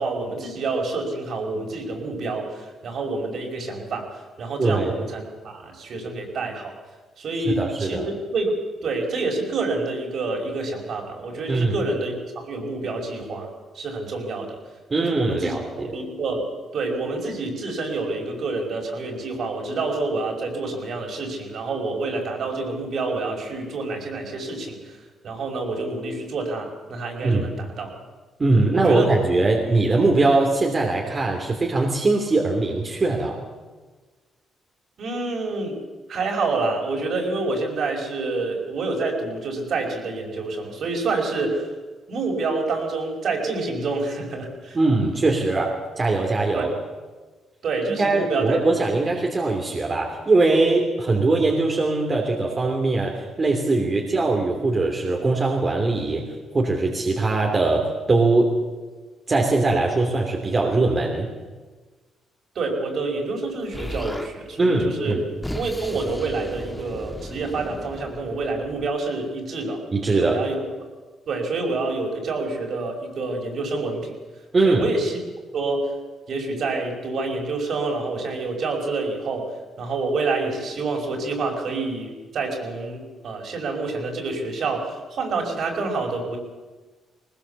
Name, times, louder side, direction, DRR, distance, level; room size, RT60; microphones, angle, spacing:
voice 1, 0.0-4.1 4.4-6.7 7.2-8.5 8.8-13.5 13.7-14.6 15.0-16.5 16.7-25.0 25.2-27.9 28.7-29.1 35.0-35.8 36.1-41.7 42.1-44.8 46.5-46.7 47.6-48.6 62.6-65.2 65.5-69.8 70.1-70.6 71.3-74.1 74.6-75.2 75.5-75.9 76.3-86.4, right 3 dB, 60° right, 1 dB, 5.5 m, -27 dB
voice 2, 4.6-4.9 7.5-8.1 11.5-11.8 14.9-15.9 27.2-27.5 28.4-33.4 44.7-46.7 48.0-56.3 56.5-58.5 59.3-61.3 64.6-65.2 69.9-70.4 74.5-74.8, right 3 dB, 30° right, 0 dB, 3.0 m, -21 dB
Explosion, 63.7-64.3 65.1-69.0, left 1 dB, 5° left, 1.9 m, -36 dB
20.5 x 20.0 x 7.1 m, 1.3 s
cardioid pair, 105°, 0 cm